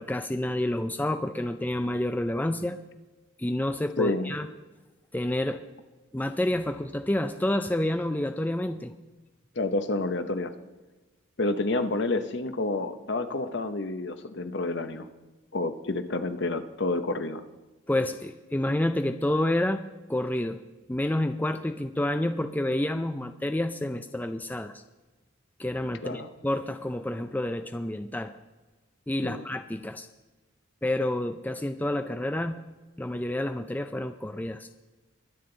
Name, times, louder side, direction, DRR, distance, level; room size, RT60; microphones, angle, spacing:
voice 1, 0.0-2.8 3.4-4.5 5.1-5.6 6.1-8.9 17.9-20.6 20.9-24.8 25.6-28.3 29.1-30.1 30.8-32.6 33.0-34.7, left 1 dB, 10° left, 8 dB, 0.4 m, -29 dB
voice 2, 4.0-4.3 9.6-10.5 11.4-15.1 15.5-17.4 26.0-26.3 29.2-29.4, left 2 dB, 55° left, 10 dB, 0.8 m, -29 dB
22.0 x 8.6 x 3.9 m, 1.2 s
head